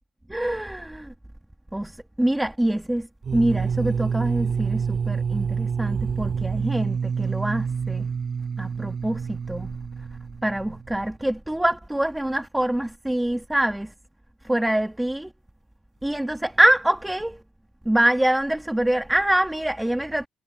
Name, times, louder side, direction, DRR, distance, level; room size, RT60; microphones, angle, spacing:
voice 1, 0.3-1.1 1.7-3.1 3.3-8.1 8.6-9.7 10.4-13.9 14.4-15.3 16.0-17.4 17.9-20.3, right 1 dB, 5° right, 1.9 m, -25 dB
sound 1, 3.2-11.0, right 6 dB, 45° right, 4.1 m, -27 dB
cardioid pair, 90°, 0 cm